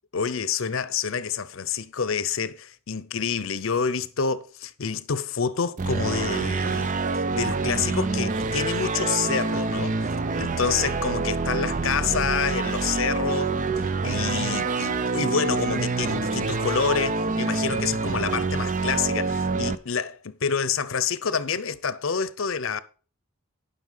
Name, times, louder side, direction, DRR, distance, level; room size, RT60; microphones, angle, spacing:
voice 1, 0.1-10.0 10.4-22.8, left 6 dB, 65° left, 0.7 m, -28 dB
sound 1, 5.8-19.8, right 3 dB, 35° right, 0.5 m, -26 dB
11.0 x 5.6 x 5.5 m
head